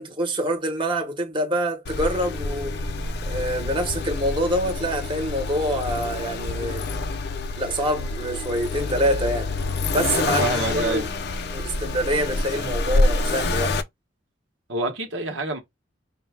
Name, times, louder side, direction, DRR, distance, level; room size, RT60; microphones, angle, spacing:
voice 1, 0.0-2.8 3.2-6.9 7.5-9.5 9.9-10.5 10.7-11.1 11.5-13.8, equal, 25° right, 1.1 m, -26 dB
Accelerating revving vroom, 1.8-13.8, left 2 dB, 60° left, 0.5 m, -27 dB
voice 2, 10.4-11.1 14.7-15.6, right 2 dB, 75° right, 1.0 m, -27 dB
5.3 x 2.2 x 3.4 m
head